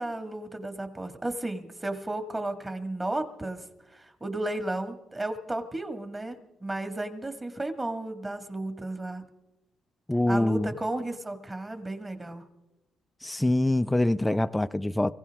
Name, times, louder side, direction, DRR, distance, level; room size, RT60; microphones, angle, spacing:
voice 1, 0.0-3.6 3.9-9.2 10.3-12.4, right 2 dB, 20° right, 1.9 m, -33 dB
voice 2, 10.1-10.7 13.2-15.1, left 1 dB, 10° left, 0.4 m, -24 dB
24.0 x 15.5 x 3.6 m
cardioid pair, 90°, 0 cm